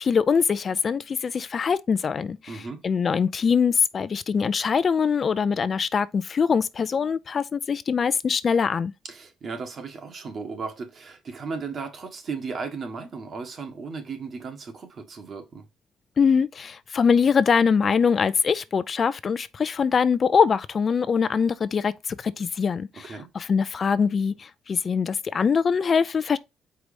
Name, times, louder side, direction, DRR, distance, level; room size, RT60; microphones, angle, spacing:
voice 1, 0.0-2.4 2.8-8.9 16.2-26.4, left 6 dB, 45° left, 0.4 m, -23 dB
voice 2, 2.5-2.8 9.0-15.6 22.9-23.3, right 4 dB, 50° right, 1.5 m, -35 dB
4.7 x 4.0 x 5.1 m
cardioid pair, 90°, 0 cm